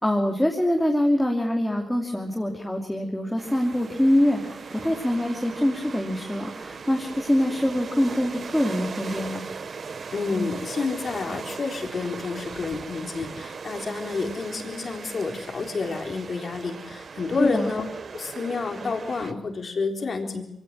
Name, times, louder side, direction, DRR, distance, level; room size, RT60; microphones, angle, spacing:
voice 1, 0.0-9.4 17.4-17.7, left 1 dB, 5° left, 1 dB, 2.8 m, -24 dB
sound 1, 3.4-19.3, right 5 dB, 55° right, 1.3 m, -38 dB
voice 2, 10.1-17.9 18.1-20.4, left 4 dB, 50° left, 4 dB, 3.8 m, -29 dB
23.0 x 17.5 x 7.6 m, 0.81 s
cardioid pair, 80°, 0 cm